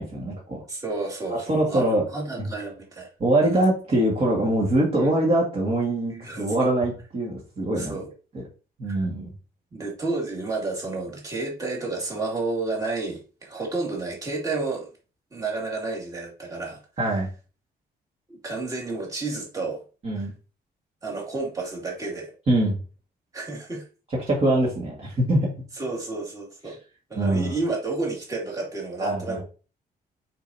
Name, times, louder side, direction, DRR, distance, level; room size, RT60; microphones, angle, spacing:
voice 1, 0.0-0.6 1.3-2.0 2.4-2.5 3.2-8.0 8.3-8.4 8.8-9.3 17.0-17.3 20.0-20.3 22.5-22.8 24.1-25.5 26.7-26.8 27.2-27.6 29.0-29.4, right 1 dB, 35° right, -3 dB, 1.9 m, -23 dB
voice 2, 0.7-3.1 3.4-3.6 5.0-5.1 6.1-6.7 7.8-8.1 8.9-9.1 9.7-14.9 15.3-16.8 17.1-17.2 18.3-19.8 20.1-20.3 21.0-22.3 23.3-23.9 25.8-26.8 27.1-29.4, right 3 dB, 20° right, -2 dB, 2.3 m, -31 dB
8.8 x 4.8 x 2.8 m, 0.35 s
wide cardioid pair, 170°, 16 cm